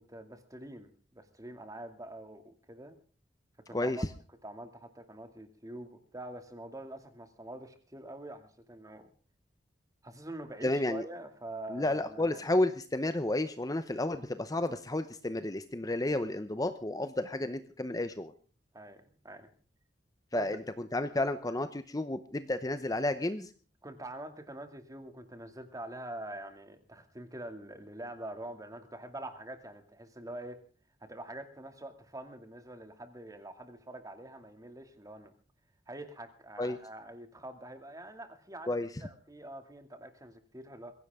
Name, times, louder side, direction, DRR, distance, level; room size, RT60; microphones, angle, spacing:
voice 1, 0.0-3.0 3.7-4.0 4.4-9.1 10.0-12.4 18.7-19.5 20.3-20.6 23.8-30.6 31.1-35.3 35.9-38.7 39.0-40.9, right 1 dB, 20° right, 7 dB, 2.4 m, -45 dB
voice 2, 10.6-11.0 11.7-18.3 20.3-23.5 36.6-36.8 38.7-38.9, left 2 dB, 20° left, 11 dB, 0.8 m, -31 dB
22.0 x 16.0 x 3.7 m, 0.39 s
head